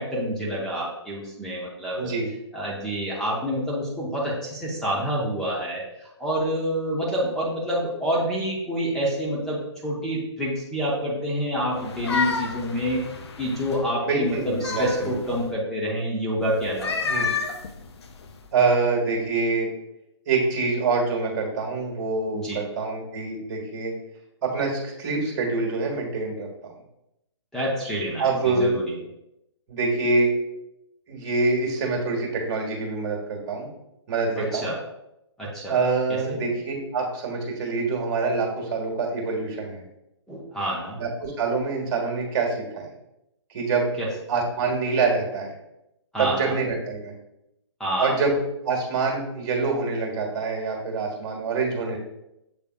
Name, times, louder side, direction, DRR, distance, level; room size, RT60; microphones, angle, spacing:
voice 1, 0.0-2.1 2.5-13.0 13.4-17.1 22.3-22.6 27.5-28.9 34.4-34.8 35.4-35.8 36.1-36.4 40.3-41.0 44.0-44.1 46.1-46.6 47.8-48.1, equal, 5° left, -6 dB, 0.7 m, -27 dB
voice 2, 2.0-2.3 14.0-15.2 17.1-17.3 18.5-19.7 20.3-23.9 24.4-26.5 28.2-28.7 29.7-30.3 31.1-33.7 34.1-34.7 35.7-39.8 41.0-42.9 43.5-43.9 44.3-45.5 46.2-47.1 48.0-48.3 48.6-52.0, right 4 dB, 40° right, 0 dB, 1.5 m, -25 dB
sound 1, 11.8-13.8 14.3-15.5 16.6-18.5, left 5 dB, 65° left, 0.6 m, -30 dB
6.9 x 3.3 x 2.2 m, 0.85 s
hypercardioid pair, 140°, 15 cm